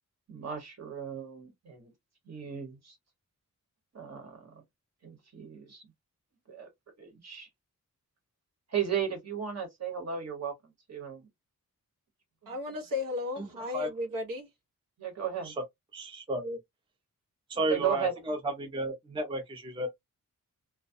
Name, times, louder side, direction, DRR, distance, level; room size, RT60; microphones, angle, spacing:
voice 1, 0.3-1.9 2.3-3.0 3.9-4.5 5.0-5.8 6.5-6.7 7.0-7.5 8.7-10.5 10.9-11.3 12.4-12.5 15.0-15.5 17.5-18.1, right 8 dB, 50° right, 1.1 m, -35 dB
voice 2, 12.5-14.5, left 3 dB, 85° right, 0.9 m, -34 dB
voice 3, 13.4-13.9 15.4-15.5 15.9-16.6 17.5-19.9, right 1 dB, 15° right, 0.5 m, -33 dB
2.3 x 2.1 x 2.5 m
wide cardioid pair, 175°, 33 cm